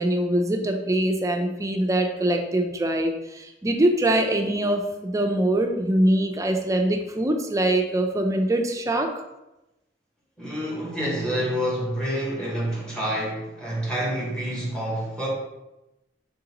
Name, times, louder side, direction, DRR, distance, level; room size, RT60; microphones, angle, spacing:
voice 1, 0.0-9.1, right 1 dB, 20° right, 0.4 m, -23 dB
voice 2, 10.4-15.3, equal, 5° left, 1.0 m, -28 dB
3.9 x 3.7 x 2.9 m
head